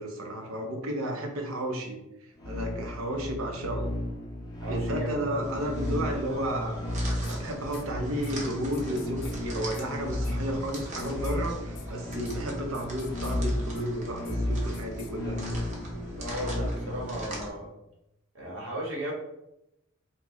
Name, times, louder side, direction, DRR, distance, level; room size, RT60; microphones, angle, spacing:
voice 1, 0.0-2.0 2.4-3.9 4.7-6.8 7.2-15.4, right 1 dB, 85° right, 3 dB, 0.7 m, -32 dB
sound 1, 2.4-17.2, left 1 dB, 20° left, 0.6 m, -34 dB
voice 2, 4.6-5.2 16.2-17.7 18.3-19.1, equal, 60° right, -2 dB, 1.0 m, -35 dB
sound 2, 5.4-17.5, right 1 dB, 35° right, 0.7 m, -41 dB
sound 3, 7.2-7.4 7.7-7.8 8.2-8.3 8.7-9.4 9.7-9.9 10.2-10.3 10.7-11.4 11.8-11.9 12.1-12.4 12.7-13.4 13.8-13.9 14.2-14.4 14.7-15.1, left 10 dB, 90° left, 0.4 m, -49 dB
2.9 x 2.2 x 3.8 m, 0.87 s
head